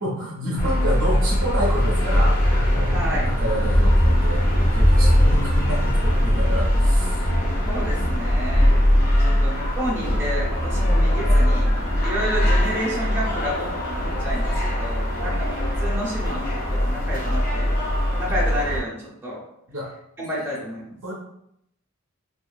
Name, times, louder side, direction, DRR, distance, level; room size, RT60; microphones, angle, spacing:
voice 1, 0.0-2.4 2.7-2.9 3.2-7.2 9.3-9.4 15.2-15.4 19.7-19.9 21.0-21.1, equal, 60° right, -3 dB, 0.5 m, -29 dB
sound 1, 0.6-18.8, equal, 40° left, 0.5 m, -20 dB
voice 2, 2.9-3.2 7.4-8.7 9.2-11.7 12.0-17.7 18.2-19.4 20.2-21.0, equal, 10° right, -6 dB, 0.6 m, -30 dB
2.6 x 2.3 x 2.2 m, 0.75 s
head